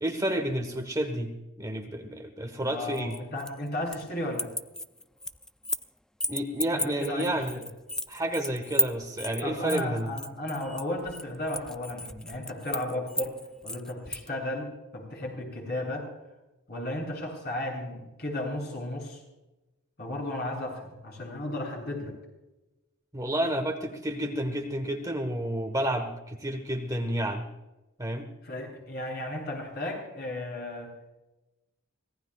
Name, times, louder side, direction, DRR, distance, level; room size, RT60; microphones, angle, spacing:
voice 1, 0.0-3.1 6.3-7.6 8.1-10.1 23.1-27.5 28.0-28.3, right 1 dB, 15° right, 4 dB, 1.3 m, -30 dB
voice 2, 2.6-4.5 6.8-7.4 9.4-13.4 13.6-14.7 14.9-16.1 16.7-19.2 20.0-22.1 28.4-30.9, left 1 dB, 50° left, -1 dB, 7.4 m, -34 dB
sound 1, 2.9-4.1 4.3-5.9 6.2-14.3, equal, 5° left, 0.4 m, -33 dB
25.0 x 18.0 x 2.4 m, 1.0 s
head